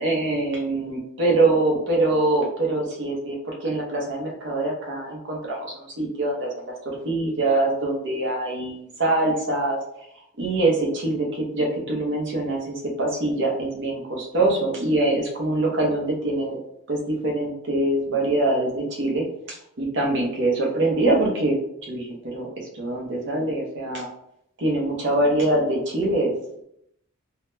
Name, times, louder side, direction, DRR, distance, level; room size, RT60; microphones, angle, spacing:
voice 1, 0.0-6.7 7.0-9.8 10.4-16.6 16.9-22.5 22.7-24.1 24.6-26.3, right 2 dB, 55° right, -1 dB, 0.8 m, -24 dB
3.8 x 2.1 x 2.6 m, 0.75 s
head